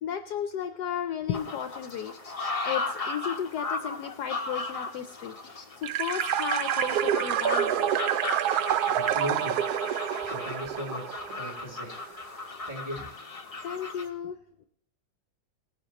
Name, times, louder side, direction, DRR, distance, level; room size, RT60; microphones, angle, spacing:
voice 1, 0.0-7.9 13.6-14.4, left 9 dB, 70° left, 8 dB, 1.1 m, -34 dB
sound 1, 1.3-14.1, left 3 dB, 40° left, 0.5 m, -36 dB
sound 2, 5.8-11.6, right 10 dB, 70° right, 1.0 m, -28 dB
voice 2, 8.9-9.6 10.2-12.0 12.7-13.1, equal, 10° right, -1 dB, 2.7 m, -37 dB
18.0 x 9.6 x 3.0 m, 0.67 s
omnidirectional pair, 2.0 m